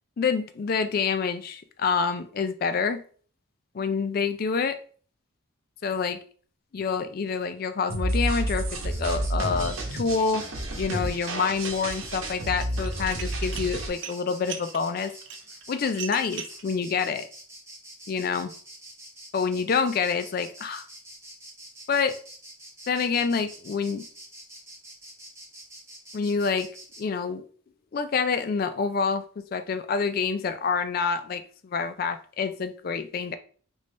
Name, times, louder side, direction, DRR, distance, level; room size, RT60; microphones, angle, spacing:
voice 1, 0.2-3.0 3.7-4.8 5.8-6.2 6.7-10.5 10.7-15.1 15.7-17.3 18.1-18.5 19.3-20.9 21.9-22.2 22.9-24.1 26.1-26.7 27.0-27.5 27.9-33.4, left 5 dB, 45° left, 0.3 m, -27 dB
sound 1, 7.9-13.9, right 1 dB, 80° right, 0.8 m, -30 dB
Insect, 8.9-27.0, right 1 dB, 15° right, 0.9 m, -46 dB
Dishes pots and pans, 11.5-12.1 12.4-16.6, right 8 dB, 60° right, 0.4 m, -40 dB
3.3 x 2.6 x 3.1 m
head